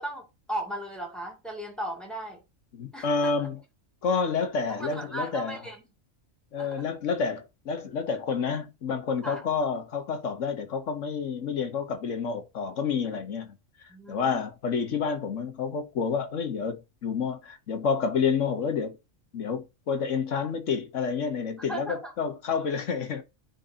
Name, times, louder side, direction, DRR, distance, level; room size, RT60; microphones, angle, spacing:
voice 1, 0.0-2.4 2.9-3.5 4.7-5.8 6.6-6.9 9.2-9.4 13.9-14.4 21.7-22.1, right 1 dB, ahead, 2.3 m, -37 dB
voice 2, 2.7-3.6 4.0-5.6 6.5-13.5 14.1-19.0 19.3-23.2, left 5 dB, 70° left, 1.4 m, -29 dB
9.8 x 3.9 x 2.8 m
omnidirectional pair, 1.4 m